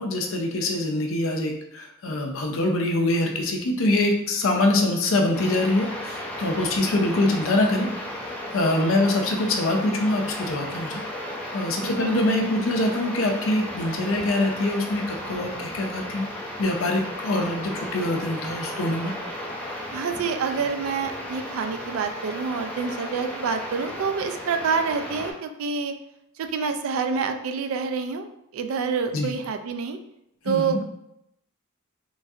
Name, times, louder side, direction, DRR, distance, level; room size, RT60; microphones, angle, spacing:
voice 1, 0.0-7.9 8.2-11.0 11.5-16.3 16.6-19.1 29.1-29.3 30.5-30.8, left 2 dB, 65° left, 2 dB, 0.5 m, -24 dB
sound 1, 5.3-25.3, left 1 dB, 5° left, 0.4 m, -35 dB
voice 2, 19.9-25.9 26.4-30.0 30.4-30.8, right 5 dB, 75° right, 7 dB, 0.3 m, -27 dB
3.0 x 2.6 x 2.4 m, 0.81 s
head